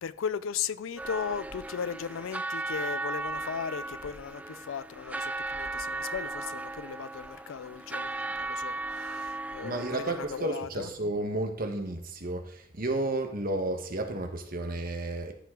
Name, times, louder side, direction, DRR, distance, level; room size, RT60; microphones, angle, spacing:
voice 1, 0.0-10.9, left 7 dB, 85° left, 0.4 m, -37 dB
sound 1, 1.0-10.5, right 2 dB, 5° right, 0.3 m, -36 dB
voice 2, 9.6-15.3, right 2 dB, 45° right, 1.2 m, -32 dB
14.0 x 5.7 x 3.7 m
head